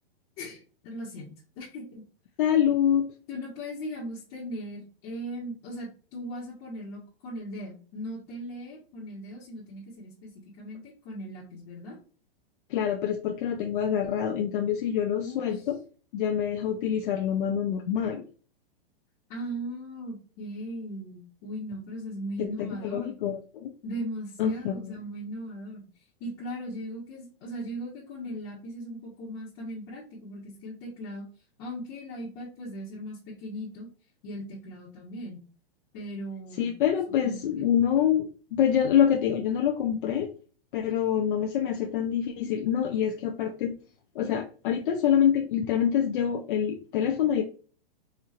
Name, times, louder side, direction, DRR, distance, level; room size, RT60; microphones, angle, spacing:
voice 1, 0.4-2.0 3.3-11.9 15.1-15.7 19.3-23.1 23.8-25.8 26.2-31.2 31.6-33.9 34.2-35.4 35.9-36.7 37.2-37.7, equal, 35° left, -6 dB, 1.3 m, -38 dB
voice 2, 2.4-3.1 12.7-15.8 16.1-18.2 22.4-23.7 24.4-25.0 36.6-40.3 40.7-43.7 44.2-47.4, left 9 dB, 60° left, 3 dB, 0.6 m, -26 dB
4.3 x 2.7 x 2.5 m, 0.39 s
hypercardioid pair, 150°, 30 cm